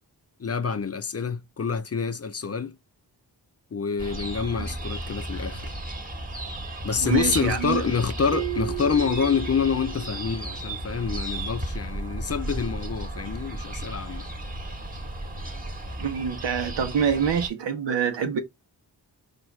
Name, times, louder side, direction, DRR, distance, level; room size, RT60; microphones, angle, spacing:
voice 1, 0.4-2.8 3.7-5.7 6.8-14.3, left 6 dB, 35° left, 0.6 m, -27 dB
sound 1, 4.0-17.5, right 1 dB, 20° right, 1.2 m, -34 dB
voice 2, 7.0-7.9 16.0-18.4, right 7 dB, 85° right, 0.9 m, -26 dB
sound 2, 8.3-10.9, right 20 dB, 35° right, 0.7 m, -35 dB
4.6 x 2.5 x 3.1 m
cardioid pair, 40°, 42 cm